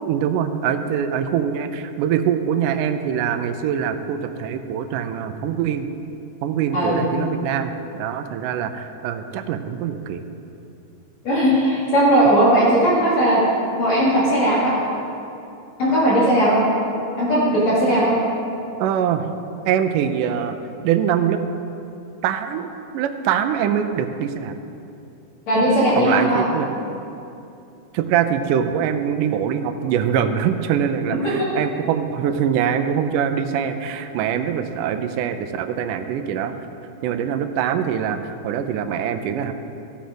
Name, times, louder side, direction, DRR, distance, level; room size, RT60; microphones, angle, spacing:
voice 1, 0.0-5.9 6.4-10.2 18.8-19.3 19.7-20.6 20.8-21.4 22.2-22.7 22.9-24.6 26.0-26.7 27.9-36.5 37.0-39.5, right 8 dB, 80° right, 8 dB, 2.0 m, -23 dB
voice 2, 6.7-7.0 11.3-13.4 13.8-14.7 15.8-16.6 17.2-18.1 25.5-26.5, right 1 dB, 55° left, -8 dB, 3.5 m, -17 dB
15.0 x 7.8 x 5.1 m, 2.7 s
omnidirectional pair, 4.0 m